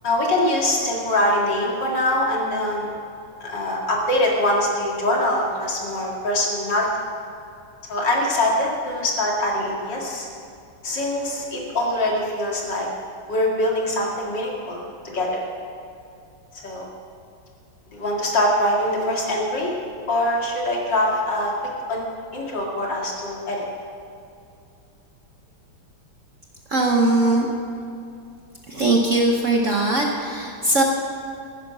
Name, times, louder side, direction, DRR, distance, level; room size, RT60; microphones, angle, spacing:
voice 1, 0.0-3.0 3.4-6.9 7.9-10.3 10.8-12.9 13.3-14.8 15.1-15.4 16.6-16.9 17.9-19.7 20.1-21.5 21.9-22.0 22.3-23.6 27.2-27.4, left 1 dB, 60° left, -2 dB, 2.8 m, -23 dB
voice 2, 26.7-27.5 28.7-30.8, right 2 dB, 50° right, 1 dB, 1.1 m, -20 dB
15.5 x 9.3 x 6.0 m, 2.6 s
omnidirectional pair, 2.2 m